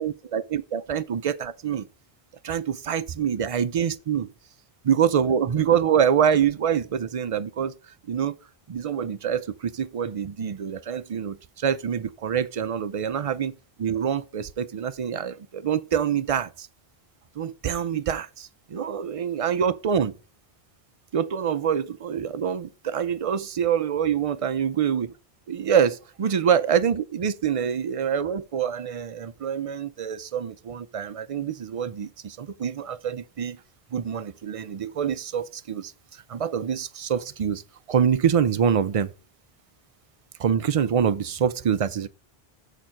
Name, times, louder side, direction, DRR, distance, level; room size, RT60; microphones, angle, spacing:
voice 1, 0.0-1.9 2.4-4.3 4.9-7.7 8.1-8.4 8.7-16.7 17.4-20.1 21.1-25.1 25.5-33.6 33.9-37.6 37.9-39.1 40.4-42.1, right 8 dB, 50° right, 0.4 m, -25 dB
7.0 x 4.4 x 6.1 m
omnidirectional pair, 1.0 m